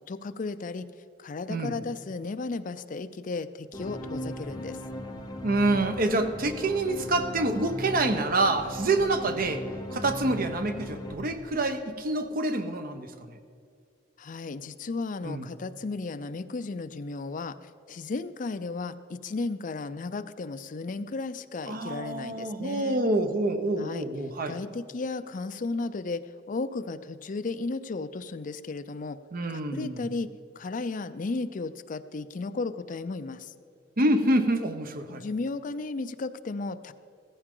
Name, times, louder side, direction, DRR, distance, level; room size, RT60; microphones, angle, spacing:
voice 1, 0.1-0.9 1.2-4.8 14.2-17.6 17.9-23.0 23.8-24.1 24.5-29.2 29.5-30.3 30.6-33.5 35.1-36.9, left 3 dB, 45° left, 12 dB, 0.5 m, -34 dB
sound 1, 3.7-12.2, left 1 dB, 25° left, 1.0 m, -38 dB
voice 2, 5.4-9.6 9.9-13.4 15.2-15.4 21.7-24.6 29.3-30.1 34.0-35.2, right 2 dB, 50° right, 8 dB, 0.8 m, -27 dB
15.5 x 14.5 x 3.8 m, 2.3 s
head